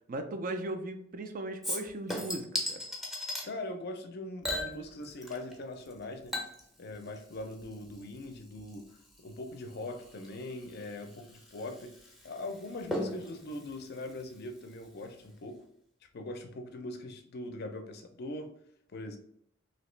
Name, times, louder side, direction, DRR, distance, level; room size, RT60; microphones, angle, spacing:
voice 1, 0.1-2.8, right 2 dB, 45° right, 7 dB, 0.4 m, -37 dB
Chink clink / Liquid, 1.6-3.5 4.4-5.6 5.8-14.9 15.2-15.3, left 1 dB, ahead, 0.6 m, -40 dB
voice 2, 3.4-6.4 6.8-8.9 9.2-11.9 12.2-15.6 16.1-18.5 18.9-19.2, left 2 dB, 55° left, 6 dB, 0.5 m, -41 dB
3.0 x 2.8 x 3.1 m, 0.71 s
head